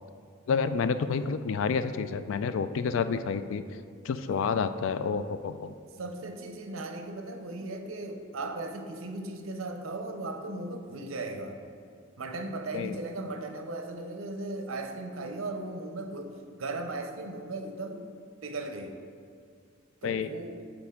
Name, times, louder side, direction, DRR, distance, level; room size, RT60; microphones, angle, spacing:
voice 1, 0.5-3.8 4.0-5.7 12.7-13.0 20.0-20.3, left 5 dB, 65° left, 11 dB, 0.3 m, -29 dB
voice 2, 6.0-11.6 12.2-18.0 18.4-18.9 20.0-20.6, right 2 dB, 75° right, 5 dB, 0.7 m, -37 dB
8.7 x 4.3 x 3.7 m, 2.2 s
head